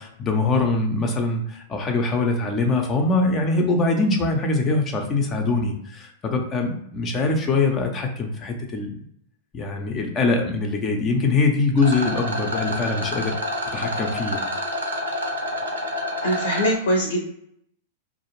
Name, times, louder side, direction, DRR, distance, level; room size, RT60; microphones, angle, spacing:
voice 1, 0.0-9.0 9.5-13.4 13.7-14.5, left 3 dB, 30° left, 2 dB, 0.5 m, -23 dB
Rattle, 11.8-16.7, left 1 dB, 85° right, 0.6 m, -28 dB
voice 2, 16.2-17.3, equal, 75° left, 0 dB, 0.6 m, -22 dB
2.4 x 2.0 x 3.0 m, 0.71 s
figure-of-eight pair, 100°, 0 cm